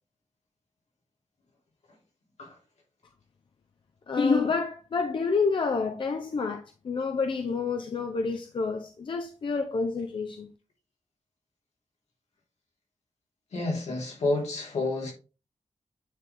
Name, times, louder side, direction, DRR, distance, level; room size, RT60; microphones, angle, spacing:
voice 1, 4.1-10.5, left 4 dB, 45° left, 0.6 m, -28 dB
voice 2, 13.5-15.1, left 2 dB, 75° left, 2.8 m, -29 dB
9.3 x 3.8 x 3.4 m
wide cardioid pair, 180°, 12 cm